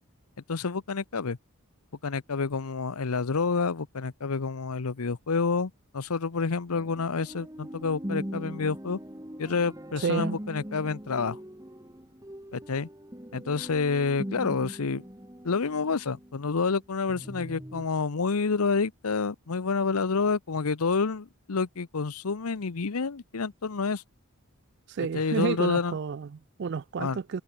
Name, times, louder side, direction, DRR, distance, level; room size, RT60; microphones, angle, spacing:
voice 1, 0.5-1.4 2.0-9.0 9.4-11.4 12.5-12.9 13.3-15.0 15.4-24.0 25.1-25.9 27.0-27.2, left 4 dB, 90° left, 0.8 m, -28 dB
sound 1, 6.7-16.8 17.1-17.9, equal, 15° right, 2.2 m, -40 dB
voice 2, 10.0-10.4 24.9-27.4, right 6 dB, 50° right, 0.3 m, -30 dB
head